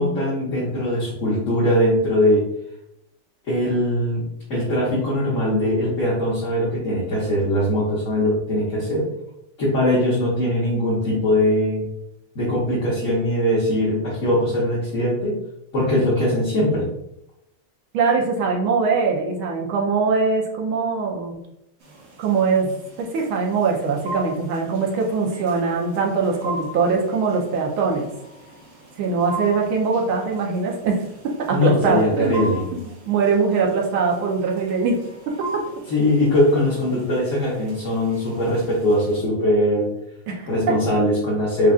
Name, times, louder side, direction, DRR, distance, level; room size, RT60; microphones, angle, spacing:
voice 1, 0.0-2.4 3.5-9.0 9.6-11.9 12.3-15.4 15.7-16.9 31.5-32.6 35.9-39.9 40.5-41.7, left 1 dB, 45° left, -7 dB, 1.2 m, -21 dB
voice 2, 17.9-21.4 22.2-28.1 29.0-32.8 33.1-35.0 35.3-35.6 40.3-40.8, right 4 dB, 75° right, 0 dB, 1.6 m, -22 dB
sound 1, 21.8-39.2, right 2 dB, 50° right, 0.8 m, -39 dB
6.7 x 2.5 x 2.4 m, 0.83 s
omnidirectional pair, 2.4 m